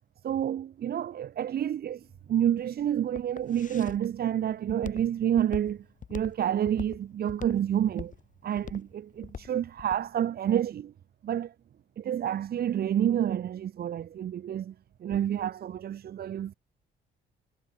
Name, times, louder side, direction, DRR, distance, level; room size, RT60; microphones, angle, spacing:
voice 1, 0.2-2.0 2.3-5.8 6.1-8.1 8.4-10.9 11.2-11.5 12.0-14.7 15.0-16.5, right 10 dB, 50° right, 0.7 m, -29 dB
Walk footsteps, 1.9-10.1, left 7 dB, 40° left, 1.2 m, -43 dB
cardioid pair, 90°, 20 cm